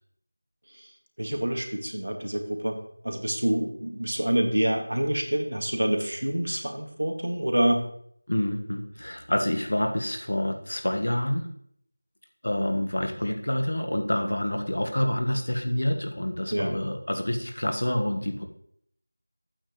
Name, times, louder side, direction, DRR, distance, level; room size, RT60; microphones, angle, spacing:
voice 1, 1.2-2.8 3.0-7.8 16.5-16.8, right 1 dB, 85° right, 3 dB, 2.1 m, -27 dB
voice 2, 8.3-11.5 12.4-18.4, left 1 dB, 60° left, 5 dB, 1.4 m, -27 dB
11.5 x 8.8 x 3.1 m, 0.68 s
figure-of-eight pair, 180°, 0 cm